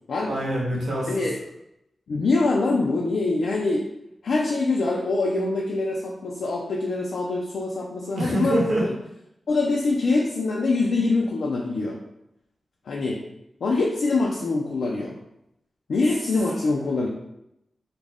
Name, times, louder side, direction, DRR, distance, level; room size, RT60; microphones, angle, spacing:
voice 1, 0.3-1.1 8.2-8.8, right 1 dB, 70° right, -4 dB, 0.8 m, -25 dB
voice 2, 2.1-3.9 4.2-8.9 9.5-12.0 12.9-13.2 13.6-15.2 15.9-17.1, left 3 dB, 85° left, -2 dB, 0.3 m, -24 dB
2.4 x 2.0 x 3.3 m, 0.83 s
cardioid pair, 65°, 0 cm